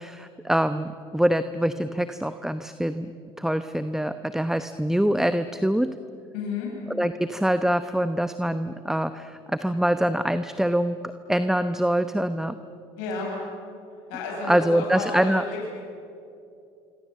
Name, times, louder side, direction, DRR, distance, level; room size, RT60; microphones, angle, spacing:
voice 1, 0.0-3.1 3.4-5.9 6.9-11.0 11.3-12.5 14.5-15.4, equal, 5° right, 11 dB, 0.9 m, -24 dB
voice 2, 6.3-6.7 13.0-13.3 14.1-15.7, left 4 dB, 85° left, -1 dB, 6.6 m, -31 dB
25.5 x 25.5 x 7.7 m, 2.6 s
supercardioid pair, 80°, 14 cm